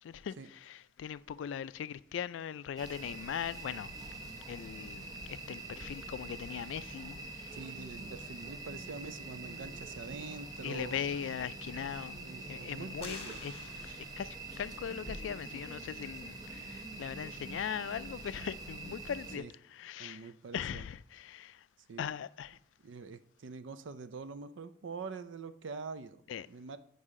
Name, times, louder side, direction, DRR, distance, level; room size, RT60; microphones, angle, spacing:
voice 1, 0.0-3.9 4.5-7.6 10.6-12.2 12.5-13.5 13.8-19.4 19.7-21.6 22.0-22.6 26.3-26.5, left 8 dB, 85° left, 0.3 m, -40 dB
sound 1, 2.8-19.4, right 2 dB, 20° right, 0.7 m, -45 dB
voice 2, 7.5-11.1 12.2-13.4 19.4-19.5 20.0-20.9 21.9-22.1 22.8-26.8, right 4 dB, 80° right, 0.5 m, -45 dB
sound 2, 13.0-14.5, left 5 dB, 30° left, 1.3 m, -49 dB
9.7 x 5.4 x 3.7 m
head